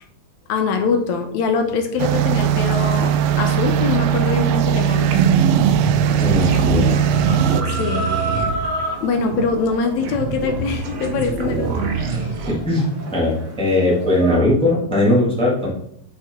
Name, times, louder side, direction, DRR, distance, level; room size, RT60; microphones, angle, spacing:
voice 1, 0.5-3.1 3.4-5.1 7.8-8.7 9.0-12.0 12.2-12.3, left 5 dB, 75° left, 6 dB, 1.8 m, -23 dB
sound 1, 2.0-7.6, right 9 dB, 80° right, 1.7 m, -19 dB
Chicken rooster, 2.7-14.4, right 2 dB, 50° right, 2.9 m, -32 dB
sound 2, 5.1-12.5, right 6 dB, 65° right, 2.0 m, -24 dB
voice 2, 6.2-7.0 12.5-12.9 13.1-13.3 13.6-15.7, left 1 dB, 5° left, -4 dB, 0.7 m, -18 dB
8.2 x 5.8 x 3.6 m, 0.73 s
omnidirectional pair, 3.9 m